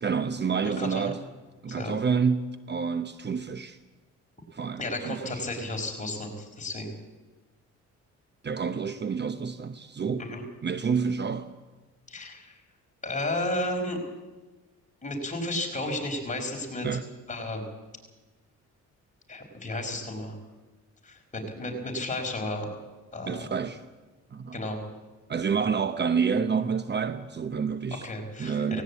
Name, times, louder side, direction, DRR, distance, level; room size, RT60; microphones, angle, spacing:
voice 1, 0.0-1.2 1.6-3.8 4.5-5.4 8.4-10.3 10.6-11.5 16.8-17.1 23.3-23.9 24.3-24.6 25.3-28.1 28.4-28.8, right 6 dB, 35° right, 0.8 m, -28 dB
voice 2, 0.6-1.1 1.7-1.9 4.8-6.9 10.2-10.4 12.1-12.6 13.0-14.0 15.0-17.0 17.3-17.6 19.3-20.4 21.0-22.7 23.1-23.5 24.5-24.8 28.0-28.8, left 1 dB, 25° left, 4.9 m, -33 dB
18.0 x 17.5 x 8.4 m
cardioid pair, 90°, 30 cm